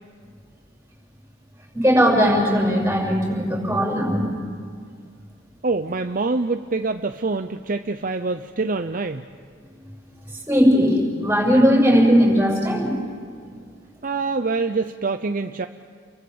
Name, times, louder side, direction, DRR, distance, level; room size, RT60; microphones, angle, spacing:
voice 1, 1.7-4.3 10.5-12.9, equal, 10° right, -1 dB, 7.1 m, -18 dB
voice 2, 5.6-9.2 14.0-15.7, right 3 dB, 45° right, 7 dB, 0.7 m, -25 dB
30.0 x 23.0 x 7.1 m, 2.1 s
head